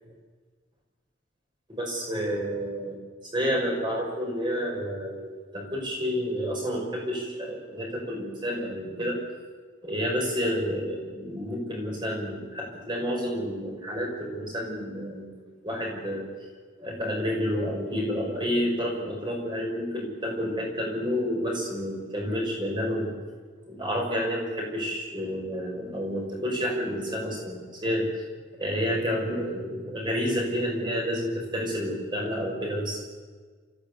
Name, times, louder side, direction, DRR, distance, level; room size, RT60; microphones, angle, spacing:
voice 1, 1.7-3.0 3.3-9.2 9.8-15.3 15.6-16.3 16.8-23.1 23.6-28.2 28.6-33.1, equal, 25° right, -1 dB, 6.3 m, -30 dB
28.5 x 15.5 x 8.4 m, 1.5 s
head